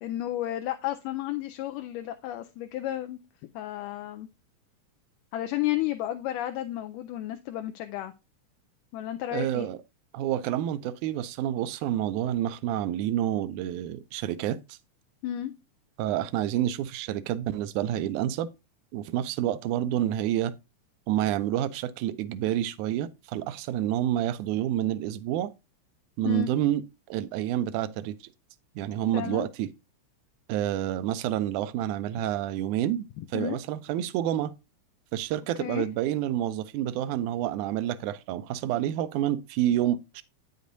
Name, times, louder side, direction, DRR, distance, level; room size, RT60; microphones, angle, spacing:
voice 1, 0.0-3.2 3.5-4.3 5.3-8.1 8.9-9.7 15.2-15.5 26.2-26.5 29.1-29.5 33.2-33.6 35.6-35.9, left 13 dB, 85° left, 2.1 m, -32 dB
voice 2, 9.3-9.8 10.1-14.8 16.0-18.5 18.9-20.5 21.1-25.5 26.2-28.2 28.8-29.7 30.5-34.5 35.1-40.2, right 12 dB, 80° right, 1.9 m, -28 dB
8.9 x 6.6 x 2.6 m
omnidirectional pair, 3.7 m